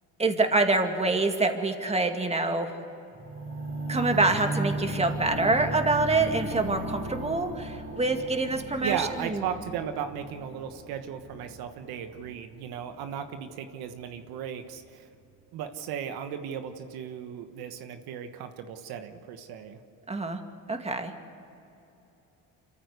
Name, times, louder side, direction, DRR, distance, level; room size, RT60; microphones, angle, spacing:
voice 1, 0.2-2.7 3.9-9.0 9.3-9.4 20.1-20.4 20.7-21.1, right 3 dB, 15° right, 5 dB, 2.2 m, -26 dB
sound 1, 3.1-13.2 13.9-14.0, right 1 dB, 35° right, 4.1 m, -36 dB
voice 2, 8.8-15.1 15.5-19.8, right 8 dB, 80° right, 8 dB, 1.4 m, -36 dB
26.0 x 14.5 x 8.2 m, 3.0 s
supercardioid pair, 85°, 36 cm